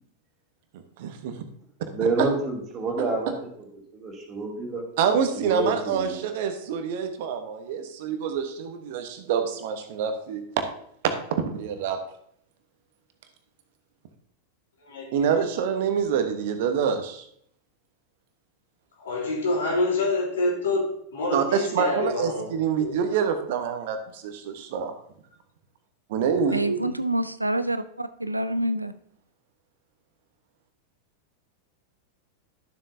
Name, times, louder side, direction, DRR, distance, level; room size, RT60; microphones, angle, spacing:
voice 1, 1.0-1.4 2.0-2.3 3.0-3.3 5.0-10.6 11.0-12.0 15.1-17.2 21.3-24.9 26.1-26.6, right 7 dB, 50° right, 7 dB, 1.1 m, -26 dB
voice 2, 1.9-3.3 3.9-4.8 5.4-5.7 6.1-6.2, right 3 dB, 30° right, 0 dB, 2.7 m, -27 dB
voice 3, 14.8-15.3 19.0-22.5 22.8-22.9 26.6-26.8, left 2 dB, 65° left, -2 dB, 3.0 m, -27 dB
voice 4, 26.5-28.9, right 1 dB, 85° right, 13 dB, 0.4 m, -27 dB
12.5 x 7.4 x 2.7 m, 0.67 s
figure-of-eight pair, 90°, 0 cm